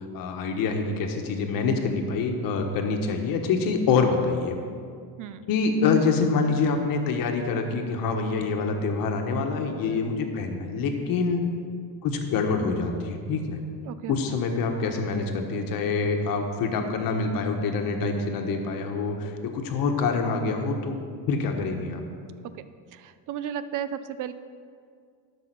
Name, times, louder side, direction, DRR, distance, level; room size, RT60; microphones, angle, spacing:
voice 1, 0.1-4.6 5.5-11.4 12.0-13.6 14.1-21.0 21.3-22.0, left 4 dB, 55° left, 4 dB, 1.3 m, -26 dB
voice 2, 13.8-14.4 22.9-24.3, right 9 dB, 50° right, 13 dB, 0.5 m, -34 dB
13.0 x 6.0 x 6.1 m, 2.2 s
cardioid pair, 145°, 40 cm